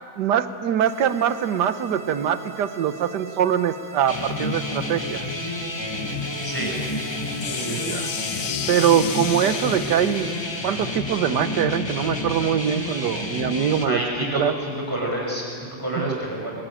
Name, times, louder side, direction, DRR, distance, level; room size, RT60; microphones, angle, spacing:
voice 1, 0.2-5.2 7.7-8.1 8.7-10.3 10.6-14.0 14.3-14.5 16.0-16.2, right 9 dB, 70° right, 11 dB, 1.5 m, -23 dB
sound 1, 0.8-9.8, right 3 dB, 45° right, 2.9 m, -42 dB
sound 2, 4.1-13.9, left 2 dB, 15° left, 1.5 m, -30 dB
sound 3, 6.1-12.0, left 9 dB, 70° left, 1.6 m, -35 dB
voice 2, 7.4-7.8 13.8-16.5, right 1 dB, 10° right, -2 dB, 6.1 m, -28 dB
22.0 x 21.0 x 9.0 m, 2.2 s
omnidirectional pair, 2.0 m